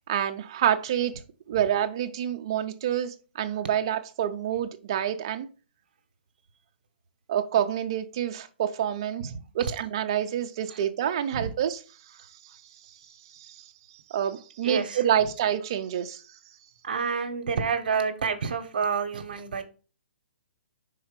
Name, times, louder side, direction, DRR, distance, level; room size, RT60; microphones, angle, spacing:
voice 1, 0.1-1.1 1.5-5.5 7.3-11.8 12.1-12.6 13.3-13.7 14.1-16.4, right 10 dB, 25° right, 0.5 m, -28 dB
voice 2, 9.2-9.7 10.7-10.8 11.3-11.5 14.6-15.3 16.8-19.6, right 5 dB, 55° right, 0.9 m, -29 dB
5.5 x 4.0 x 5.0 m
hypercardioid pair, 180°, 6 cm